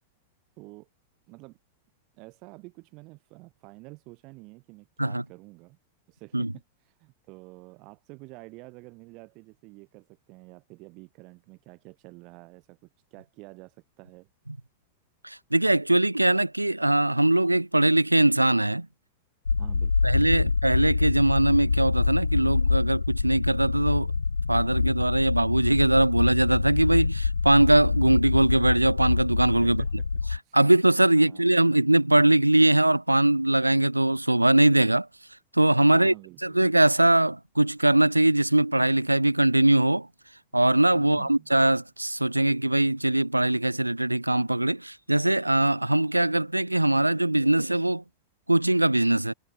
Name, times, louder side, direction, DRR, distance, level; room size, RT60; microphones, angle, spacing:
voice 1, 0.6-0.9 1.3-1.6 2.1-5.8 6.1-14.3 19.6-20.5 29.6-30.1 30.4-30.6 31.0-31.6 35.8-36.6 40.9-41.5, right 25 dB, 40° right, 2.2 m, -48 dB
voice 2, 15.2-18.9 20.0-24.1 24.5-29.8 30.5-35.1 35.5-36.1 36.4-40.1 40.5-48.0 48.5-49.3, right 1 dB, 85° right, 0.3 m, -21 dB
sound 1, 19.5-30.4, left 4 dB, 75° left, 0.6 m, -26 dB
figure-of-eight pair, 90°, 0 cm